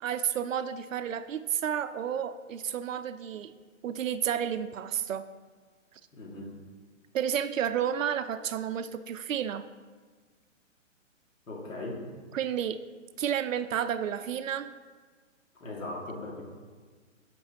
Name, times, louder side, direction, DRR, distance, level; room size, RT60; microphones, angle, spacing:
voice 1, 0.0-3.5 3.8-5.3 7.1-9.6 12.3-12.8 13.2-14.7, right 9 dB, 80° right, 12 dB, 0.6 m, -31 dB
voice 2, 6.1-6.5 11.5-12.0 15.6-16.5, left 2 dB, 85° left, -2 dB, 2.3 m, -38 dB
14.5 x 6.0 x 2.9 m, 1.5 s
hypercardioid pair, 150°, 39 cm